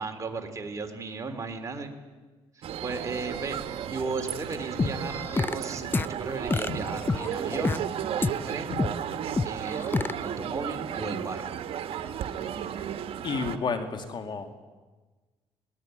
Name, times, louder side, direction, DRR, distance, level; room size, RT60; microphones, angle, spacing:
voice 1, 0.0-1.9 2.5-7.8 8.2-8.8 9.4-11.6, right 4 dB, 30° right, 4 dB, 3.3 m, -36 dB
sound 1, 2.6-13.6, right 9 dB, 65° right, 1.5 m, -34 dB
sound 2, 4.8-10.8, left 3 dB, 75° left, 5.7 m, -43 dB
sound 3, 4.8-5.5 5.9-6.0 6.5-7.8 8.2-8.3 8.8-8.9 9.4-10.1, left 3 dB, 20° left, 0.6 m, -26 dB
voice 2, 13.2-14.5, left 5 dB, 45° left, 7 dB, 2.7 m, -31 dB
21.5 x 20.0 x 9.1 m, 1.3 s
cardioid pair, 100°, 10 cm